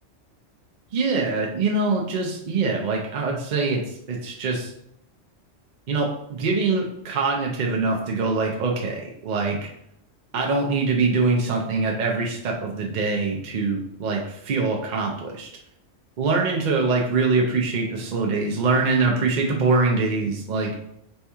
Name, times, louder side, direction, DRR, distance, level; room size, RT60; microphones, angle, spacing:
voice 1, 0.9-3.8 4.1-4.7 5.9-9.7 10.3-15.5 16.2-20.7, right 3 dB, 55° right, -1 dB, 0.5 m, -23 dB
4.3 x 2.9 x 3.4 m, 0.75 s
omnidirectional pair, 1.3 m